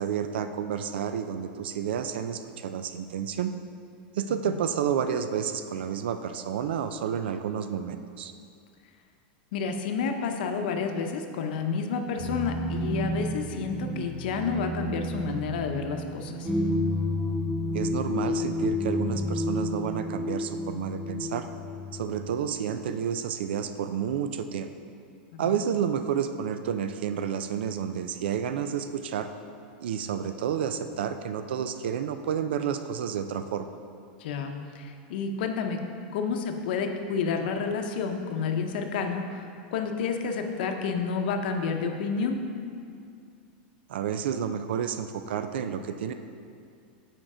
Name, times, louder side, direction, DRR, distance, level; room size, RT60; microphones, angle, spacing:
voice 1, 0.0-3.5 4.2-8.3 17.7-21.5 21.9-24.7 25.4-29.3 29.8-33.6 43.9-46.1, right 8 dB, 90° right, 9 dB, 0.4 m, -30 dB
voice 2, 9.5-16.5 25.3-25.5 34.2-35.8 36.1-42.4, left 5 dB, 65° left, 5 dB, 0.7 m, -30 dB
sound 1, 12.2-22.9, left 1 dB, 20° right, 1.5 m, -31 dB
7.7 x 4.5 x 4.9 m, 2.4 s
supercardioid pair, 155°, 5 cm